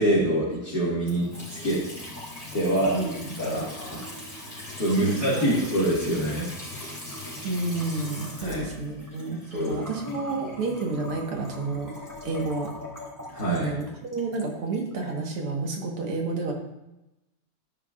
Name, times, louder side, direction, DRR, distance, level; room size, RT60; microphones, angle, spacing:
voice 1, 0.0-1.8 2.5-3.0 3.4-4.0 4.8-6.5 8.4-8.6 9.5-9.8 13.3-13.7, right 1 dB, 45° left, -9 dB, 2.6 m, -25 dB
Water tap faucet / Sink (filling or washing) / Trickle dribble, 1.0-15.1, left 1 dB, 10° left, 3.3 m, -40 dB
voice 2, 2.9-3.7 5.0-5.5 7.4-11.9 12.2-12.7 13.5-16.5, right 3 dB, 80° right, 1 dB, 2.5 m, -30 dB
13.0 x 9.8 x 2.5 m, 0.93 s
omnidirectional pair, 2.4 m